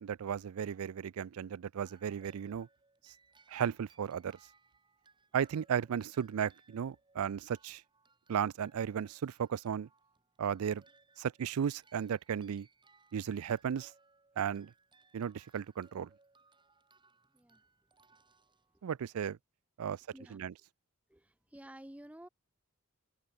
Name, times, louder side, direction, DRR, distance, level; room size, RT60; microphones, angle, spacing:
voice 1, 0.0-2.7 3.5-4.4 5.3-7.8 8.3-9.9 10.4-10.8 11.2-12.7 13.1-13.9 14.4-14.7 15.1-16.1 18.8-19.4 19.8-20.0 20.3-20.5, right 8 dB, 80° right, 0.4 m, -35 dB
sound 1, 1.9-19.2, right 3 dB, 20° right, 3.6 m, -67 dB
voice 2, 19.8-20.5 21.1-22.3, right 1 dB, 5° right, 0.9 m, -53 dB
head